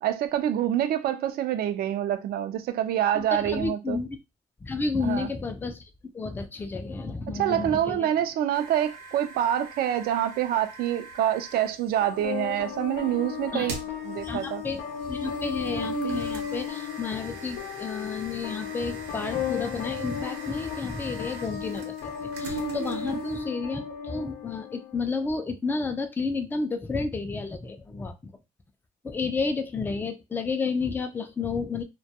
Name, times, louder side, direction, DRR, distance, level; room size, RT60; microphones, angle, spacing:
voice 1, 0.0-4.0 5.0-5.3 7.3-13.8 14.0-14.6 23.0-23.2, right 11 dB, 65° right, 0.4 m, -26 dB
voice 2, 3.1-4.1 4.6-5.8 6.1-8.1 13.5-13.7 14.2-14.8 15.1-28.1 29.0-31.8, left 4 dB, 10° left, 0.4 m, -31 dB
sound 1, 8.5-11.7 13.4-23.4, right 6 dB, 85° right, 0.9 m, -40 dB
sound 2, 12.0-25.0, left 8 dB, 90° left, 0.6 m, -35 dB
2.2 x 2.2 x 2.7 m
cardioid pair, 110°, 17 cm